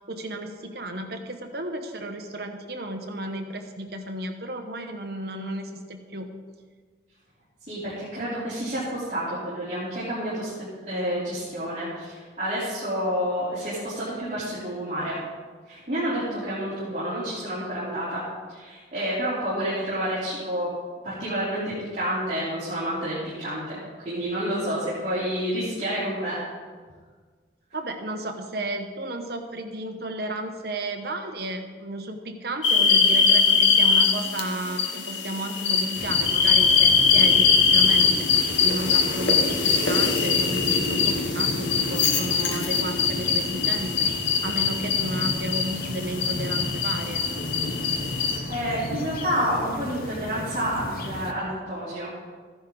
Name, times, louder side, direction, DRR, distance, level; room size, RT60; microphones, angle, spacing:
voice 1, 0.1-6.3 27.7-38.3 38.6-44.1 44.4-47.2, right 1 dB, 55° right, 4 dB, 1.2 m, -33 dB
voice 2, 7.7-10.5 10.9-15.2 15.7-18.2 18.5-20.7 21.0-23.8 24.0-26.4 48.3-52.1, equal, 40° right, -11 dB, 3.7 m, -29 dB
sound 1, 32.6-48.4, left 5 dB, 80° left, 1.2 m, -22 dB
sound 2, 36.0-51.3, left 1 dB, 50° left, 0.9 m, -34 dB
14.5 x 10.5 x 4.0 m, 1.5 s
head